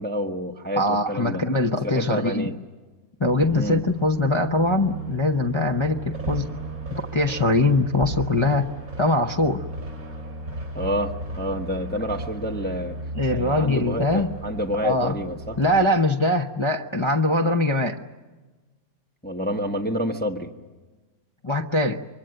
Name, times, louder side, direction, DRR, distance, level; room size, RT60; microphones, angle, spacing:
voice 1, 0.0-1.4 1.8-2.5 3.5-3.8 10.7-12.9 13.3-15.6 19.2-20.5, equal, 5° left, 2 dB, 1.2 m, -28 dB
voice 2, 0.8-2.4 3.2-6.5 6.9-8.7 9.0-9.6 13.1-14.3 14.8-15.1 15.6-18.0 21.4-22.0, left 2 dB, 25° left, 1 dB, 0.8 m, -22 dB
sound 1, 3.2-15.9, right 2 dB, 65° right, 6.0 m, -35 dB
25.5 x 23.5 x 7.8 m, 1.3 s
omnidirectional pair, 1.5 m